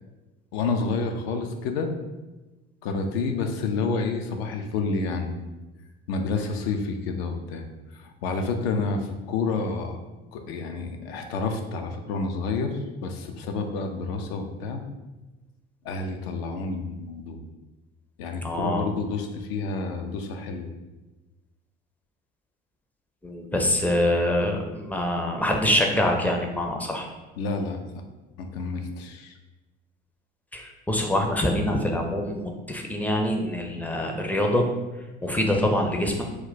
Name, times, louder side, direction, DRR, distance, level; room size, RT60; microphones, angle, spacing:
voice 1, 0.5-1.9 2.8-5.5 6.1-7.7 7.9-10.0 10.3-14.8 15.8-17.4 18.2-20.7 27.4-27.8 28.4-29.3 31.1-31.2, left 4 dB, 75° left, 5 dB, 0.5 m, -29 dB
voice 2, 18.4-18.8 23.2-27.1 30.5-34.6 35.2-36.2, left 1 dB, 5° left, 2 dB, 0.4 m, -25 dB
2.2 x 2.1 x 3.9 m, 1.1 s
hypercardioid pair, 60°, 31 cm